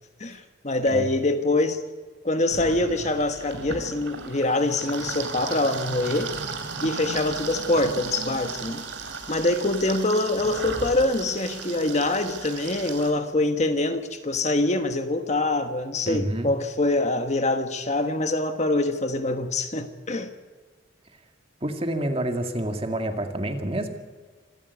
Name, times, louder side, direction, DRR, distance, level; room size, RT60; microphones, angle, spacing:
voice 1, 0.2-1.8 2.2-6.3 6.8-8.8 9.3-20.3, left 2 dB, 35° left, 1.4 m, -24 dB
sound 1, 2.5-13.1, right 4 dB, 75° right, 3.3 m, -35 dB
voice 2, 16.1-16.5 21.6-23.9, right 1 dB, 30° right, 2.1 m, -28 dB
26.5 x 14.0 x 8.3 m
head